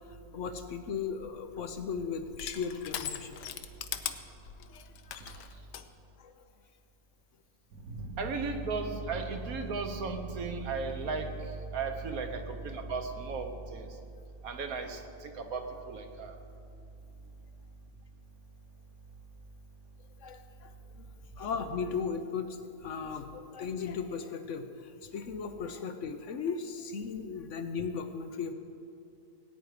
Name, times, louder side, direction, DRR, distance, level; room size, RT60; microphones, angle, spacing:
voice 1, 0.3-3.4 4.6-4.8 5.2-5.5 6.2-6.3 20.2-21.1 21.4-28.5, left 6 dB, 60° left, 8 dB, 0.8 m, -37 dB
Crushing, 1.0-5.9, left 10 dB, 80° left, 1.3 m, -41 dB
voice 2, 7.8-13.9 14.4-16.3, right 4 dB, 60° right, 6 dB, 1.4 m, -35 dB
18.0 x 9.3 x 4.8 m, 2.5 s
omnidirectional pair, 1.9 m